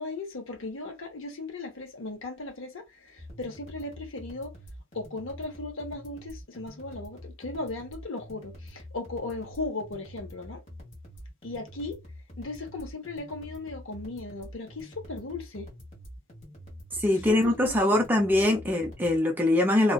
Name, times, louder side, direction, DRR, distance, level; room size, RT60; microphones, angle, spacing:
voice 1, 0.0-4.6 4.9-10.6 11.4-12.0 12.4-15.7 17.1-17.8 18.4-18.6, left 3 dB, 65° left, 0.7 m, -37 dB
sound 1, 3.2-19.2, equal, 35° left, 1.1 m, -46 dB
voice 2, 17.0-19.9, left 1 dB, 10° right, 0.5 m, -23 dB
2.4 x 2.2 x 2.3 m
head